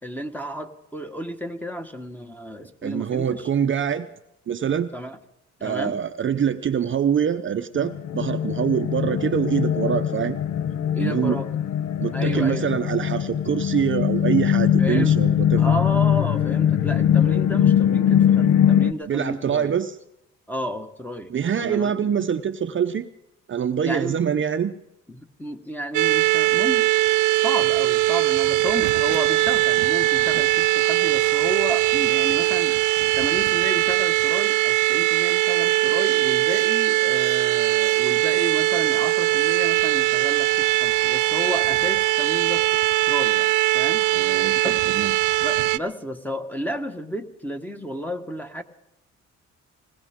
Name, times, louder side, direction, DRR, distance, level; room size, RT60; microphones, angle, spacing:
voice 1, 0.0-3.5 4.9-5.2 5.6-6.0 10.9-11.5 12.1-12.7 14.8-15.2 15.6-19.7 20.5-21.3 21.6-21.9 23.8-24.2 25.1-26.9 27.3-44.1 44.6-44.8 45.4-48.6, equal, 5° left, 6 dB, 1.5 m, -32 dB
voice 2, 2.8-4.1 4.5-4.9 5.6-10.4 11.0-11.4 12.0-15.6 19.0-20.0 21.3-23.1 23.5-24.8 44.1-45.1, right 8 dB, 40° right, 8 dB, 0.7 m, -24 dB
sound 1, 7.7-18.9, left 9 dB, 70° left, 0.7 m, -21 dB
sound 2, 25.9-45.8, right 18 dB, 85° right, 0.5 m, -20 dB
20.5 x 18.5 x 3.7 m, 0.85 s
cardioid pair, 90°, 30 cm